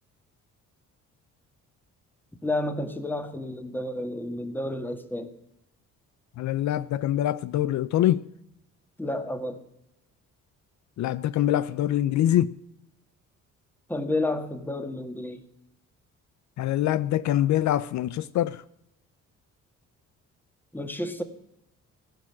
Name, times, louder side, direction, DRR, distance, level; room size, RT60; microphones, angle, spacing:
voice 1, 2.4-5.3 9.0-9.6 13.9-15.4 20.7-21.2, left 1 dB, 5° left, 1.6 m, -30 dB
voice 2, 6.4-8.2 11.0-12.5 16.6-18.6, left 12 dB, 65° left, 0.5 m, -24 dB
15.5 x 6.5 x 9.9 m
cardioid pair, 90°, 30 cm